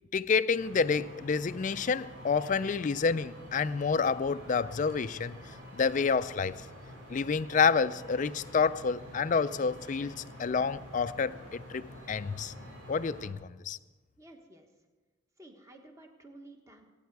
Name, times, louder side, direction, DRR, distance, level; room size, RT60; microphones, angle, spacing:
voice 1, 0.1-5.4 5.7-6.6 7.1-12.5 12.9-13.8, left 5 dB, 35° left, 0.3 m, -29 dB
sound 1, 0.6-13.3, equal, 55° right, 4.8 m, -48 dB
voice 2, 14.2-14.7 15.4-16.9, right 1 dB, 15° right, 1.2 m, -52 dB
23.5 x 9.4 x 4.6 m
head